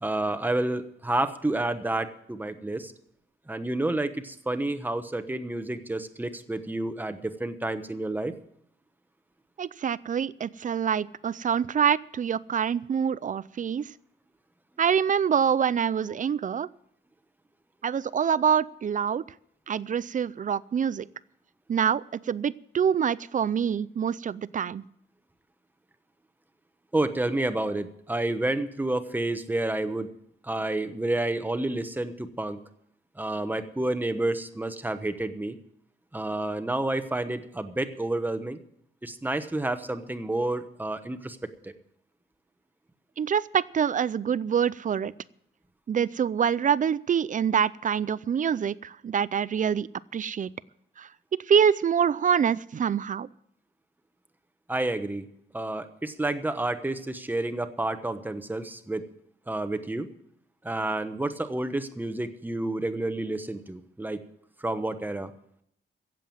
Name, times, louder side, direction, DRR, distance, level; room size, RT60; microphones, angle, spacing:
voice 1, 0.0-2.9 3.5-8.3 26.9-30.1 30.4-32.6 33.2-35.6 36.1-38.6 39.0-41.4 41.6-41.7 54.7-55.3 55.5-59.0 59.5-60.1 60.6-64.2 64.6-65.3, right 2 dB, 10° right, 10 dB, 1.0 m, -29 dB
voice 2, 9.6-13.9 14.8-16.7 17.8-19.2 19.7-21.1 21.7-24.8 43.2-45.1 45.9-50.5 51.0-53.3, right 7 dB, 40° right, 19 dB, 0.4 m, -26 dB
16.0 x 7.6 x 7.7 m, 0.72 s
wide cardioid pair, 145°, 20 cm